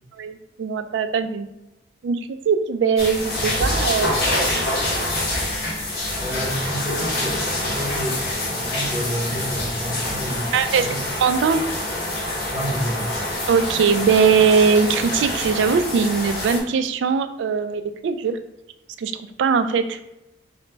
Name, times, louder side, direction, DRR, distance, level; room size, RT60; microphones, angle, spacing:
voice 1, 0.2-1.5 2.0-2.2 2.5-4.1 4.4-4.6 5.0-5.1 10.5-10.9 11.2-11.6 13.5-18.4 19.0-19.1 19.4-20.0, right 6 dB, 85° right, 10 dB, 0.3 m, -20 dB
sound 1, 3.0-16.6, left 1 dB, 60° left, 1.2 m, -26 dB
voice 2, 6.2-11.0 12.5-13.1, equal, 15° right, -2 dB, 0.7 m, -29 dB
4.9 x 2.1 x 3.2 m, 0.88 s
head